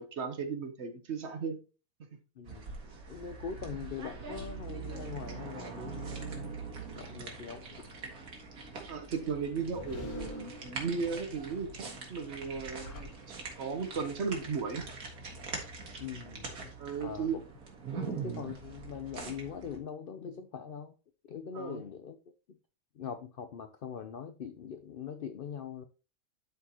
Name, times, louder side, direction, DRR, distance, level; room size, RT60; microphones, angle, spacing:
voice 1, 0.0-1.6 8.9-14.9 16.8-17.4 17.9-18.3 21.5-21.8, right 5 dB, 55° right, 1.1 m, -36 dB
voice 2, 2.4-2.7 3.1-6.6 6.9-7.9 16.0-16.7 17.0-17.4 18.0-20.9 21.2-22.2 22.9-25.8, left 7 dB, 60° left, 0.5 m, -42 dB
sound 1, 2.4-19.8, right 5 dB, 80° right, 2.0 m, -43 dB
sound 2, 9.3-11.2 12.3-13.8, equal, 80° left, 1.8 m, -46 dB
11.5 x 4.5 x 2.9 m
omnidirectional pair, 1.5 m